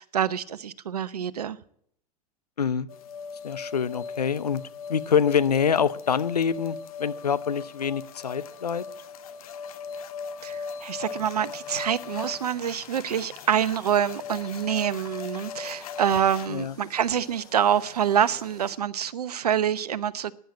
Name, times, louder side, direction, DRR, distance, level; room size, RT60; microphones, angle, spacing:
voice 1, 0.0-1.6 10.4-20.3, right 9 dB, 75° right, 0.9 m, -26 dB
voice 2, 2.6-2.9 3.4-4.6 4.9-8.9 16.5-16.7, left 7 dB, 85° left, 0.7 m, -25 dB
sound 1, 2.9-16.5, left 5 dB, 65° left, 1.2 m, -38 dB
sound 2, 11.1-18.7, left 3 dB, 20° left, 5.8 m, -53 dB
16.0 x 10.0 x 8.5 m
figure-of-eight pair, 90°, 20 cm